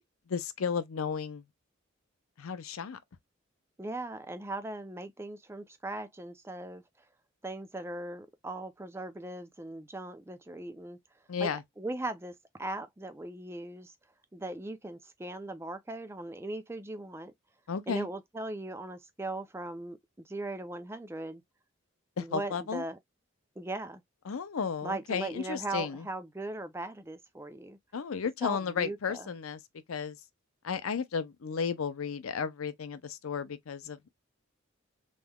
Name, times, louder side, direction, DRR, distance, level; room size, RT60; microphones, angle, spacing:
voice 1, 0.3-1.4 2.4-3.0 11.3-11.6 17.7-18.1 22.2-22.8 24.3-26.0 27.9-29.6 29.9-30.2 30.6-34.1, left 6 dB, 85° left, 0.5 m, -33 dB
voice 2, 3.8-6.8 7.4-11.0 11.4-11.5 11.8-13.9 14.3-17.3 17.9-21.4 22.2-23.0 23.6-24.0 24.8-27.8 28.4-29.3, right 2 dB, 10° right, 0.4 m, -39 dB
3.6 x 3.1 x 2.2 m
head